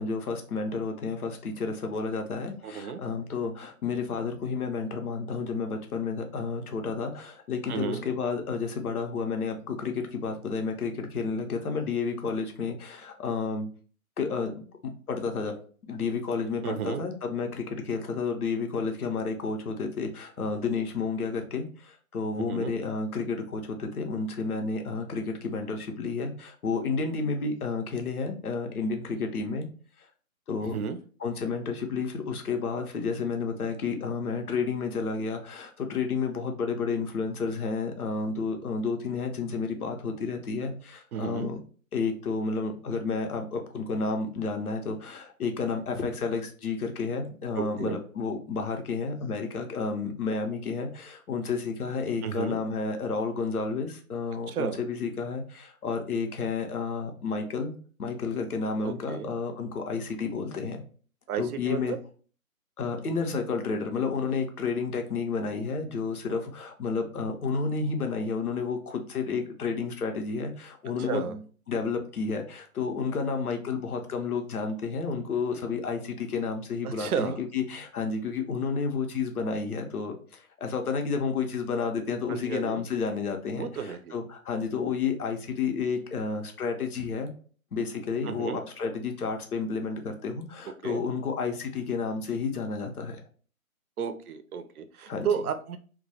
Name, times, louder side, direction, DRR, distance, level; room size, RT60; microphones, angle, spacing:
voice 1, 0.0-13.7 14.2-15.6 15.9-29.7 30.5-30.8 31.2-41.6 41.9-57.7 58.0-60.8 61.4-62.0 62.8-71.4 71.7-87.3 87.7-93.2 95.1-95.3, left 5 dB, 90° left, 4 dB, 0.8 m, -31 dB
voice 2, 2.6-3.0 7.7-8.0 16.6-17.0 22.4-22.7 30.7-31.0 41.1-41.5 47.6-48.0 52.2-52.6 54.5-54.8 58.8-59.3 61.3-62.0 71.0-71.3 76.8-77.4 82.3-82.8 83.6-84.2 88.2-88.6 90.8-91.0 94.0-95.8, right 7 dB, 85° right, 8 dB, 0.5 m, -32 dB
2.2 x 2.1 x 2.7 m, 0.41 s
hypercardioid pair, 160°, 43 cm